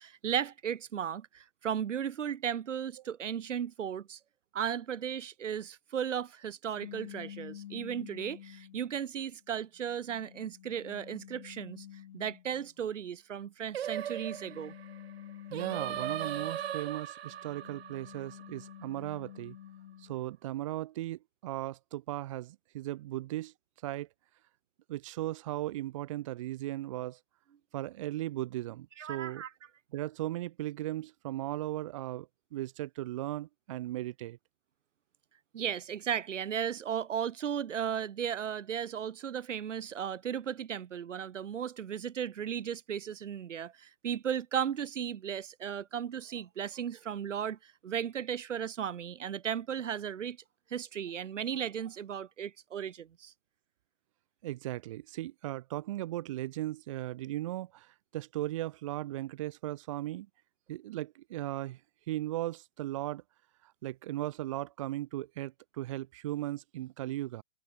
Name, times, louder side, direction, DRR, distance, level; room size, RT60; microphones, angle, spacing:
voice 1, 0.0-4.2 4.5-11.9 12.1-14.7 29.0-29.5 35.5-50.4 50.7-53.3, right 8 dB, 70° right, 1.4 m, -35 dB
sound 1, 6.8-8.9 9.6-12.7 13.8-16.8 17.3-20.2, left 11 dB, 40° left, 1.3 m, -49 dB
Singing, 13.7-19.0, right 10 dB, 55° right, 0.9 m, -38 dB
voice 2, 15.5-19.6 20.0-23.5 23.8-24.1 24.9-27.2 27.7-29.4 29.9-34.4 54.4-60.3 60.7-61.8 62.1-63.2 63.6-67.4, right 15 dB, 25° right, 0.9 m, -37 dB
hypercardioid pair, 160°, 38 cm